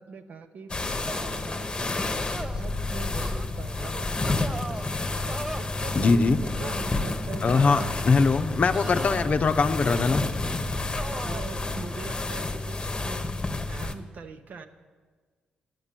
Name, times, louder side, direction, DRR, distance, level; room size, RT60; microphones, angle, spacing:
voice 1, 0.0-4.6 5.1-7.9 8.9-9.0 11.2-14.7, right 5 dB, 60° right, 8 dB, 0.9 m, -42 dB
sound 1, 0.7-13.9, left 2 dB, 30° left, 1.0 m, -30 dB
sound 2, 1.1-1.5 2.2-2.7 3.2-3.4 4.2-4.9 5.3-5.6 6.5-6.8 7.5-7.9 8.7-9.4 9.9-10.3 10.9-11.5, right 2 dB, 20° right, 0.6 m, -38 dB
voice 2, 5.9-6.4 7.4-10.2, left 4 dB, 50° left, 9 dB, 0.7 m, -22 dB
9.6 x 7.7 x 7.5 m, 1.5 s
supercardioid pair, 65°, 3 cm